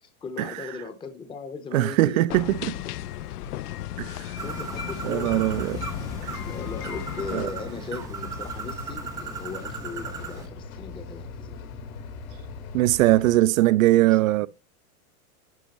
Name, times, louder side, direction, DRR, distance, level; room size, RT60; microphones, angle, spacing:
voice 1, 0.0-2.5 2.7-2.8 4.4-5.4 6.4-11.7 14.0-14.5, left 5 dB, 10° left, 0.7 m, -38 dB
voice 2, 1.7-2.7 4.0-4.2 5.0-5.8 7.3-7.5 12.7-14.5, right 16 dB, 65° right, 0.5 m, -21 dB
sound 1, 2.3-7.5, left 13 dB, 85° left, 0.5 m, -35 dB
Bird, 4.4-10.5, right 5 dB, 10° right, 0.3 m, -37 dB
sound 2, 5.3-13.4, left 4 dB, 65° left, 1.6 m, -40 dB
10.5 x 5.0 x 2.9 m
hypercardioid pair, 130°, 45 cm